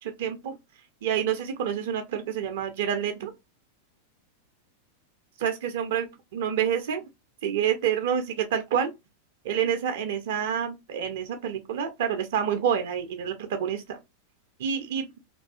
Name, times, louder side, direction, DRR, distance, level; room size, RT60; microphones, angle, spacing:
voice 1, 0.0-0.6 1.0-3.3 5.4-7.0 7.4-8.9 9.4-14.0 14.6-15.1, right 8 dB, 55° right, 0.4 m, -28 dB
2.4 x 2.3 x 2.2 m
figure-of-eight pair, 90°, 0 cm